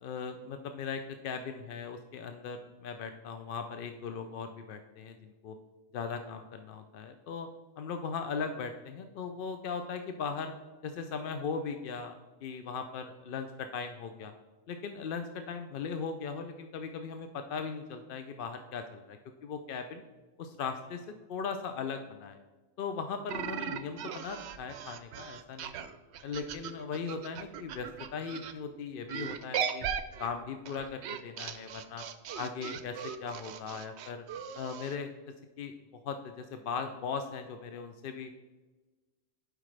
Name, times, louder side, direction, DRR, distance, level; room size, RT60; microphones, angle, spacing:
voice 1, 0.0-5.6 5.9-7.5 7.8-10.5 10.8-14.3 14.7-20.0 20.4-22.4 22.8-25.8 26.2-29.9 30.2-32.0 32.4-34.2 34.5-35.1 35.6-35.7 36.0-38.3, left 5 dB, 60° left, 7 dB, 0.6 m, -38 dB
sound 1, 23.3-28.5 29.1-35.0, right 8 dB, 75° right, 0.8 m, -38 dB
11.0 x 5.0 x 3.2 m, 1.2 s
omnidirectional pair, 1.2 m